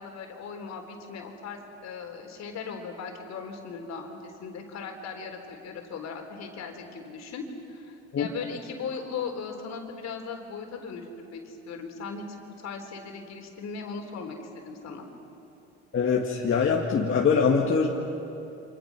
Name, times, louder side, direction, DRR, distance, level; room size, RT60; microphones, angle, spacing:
voice 1, 0.0-15.1, left 5 dB, 60° left, 3 dB, 3.8 m, -38 dB
voice 2, 15.9-17.9, left 5 dB, 40° left, -2 dB, 2.2 m, -23 dB
29.0 x 25.5 x 6.2 m, 2.8 s
supercardioid pair, 90°, 31 cm